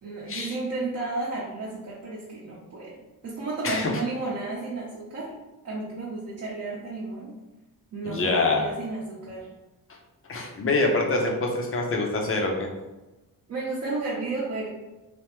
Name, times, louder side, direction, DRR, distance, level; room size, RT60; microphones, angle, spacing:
voice 1, 0.0-3.0 3.2-5.3 5.6-7.3 7.9-9.5 13.5-14.7, right 3 dB, 40° right, -7 dB, 0.8 m, -32 dB
voice 2, 8.0-8.7 10.3-12.7, left 3 dB, 35° left, 1 dB, 0.6 m, -25 dB
3.3 x 2.0 x 3.0 m, 1.0 s
cardioid pair, 135°, 37 cm